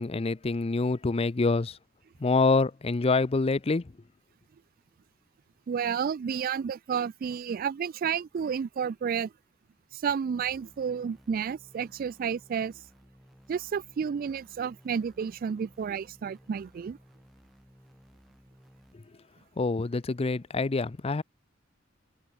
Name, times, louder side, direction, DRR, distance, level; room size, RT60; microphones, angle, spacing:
voice 1, 0.0-1.8 2.2-3.8 19.6-21.2, left 3 dB, 30° left, 0.5 m, -26 dB
voice 2, 5.7-9.3 9.9-12.7 13.5-17.0, right 7 dB, 45° right, 0.3 m, -31 dB
sound 1, 10.3-18.9, equal, ahead, 1.6 m, -58 dB
open air
head